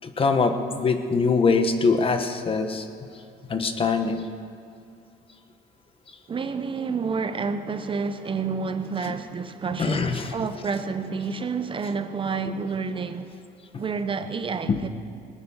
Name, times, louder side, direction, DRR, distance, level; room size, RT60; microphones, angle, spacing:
voice 1, 0.0-2.9 3.5-4.3 9.8-10.3 13.7-13.8 14.7-14.8, left 4 dB, 35° left, 1.2 m, -23 dB
voice 2, 6.3-13.3 13.8-14.9, right 5 dB, 30° right, 0.7 m, -29 dB
20.0 x 9.5 x 6.4 m
cardioid pair, 110°, 17 cm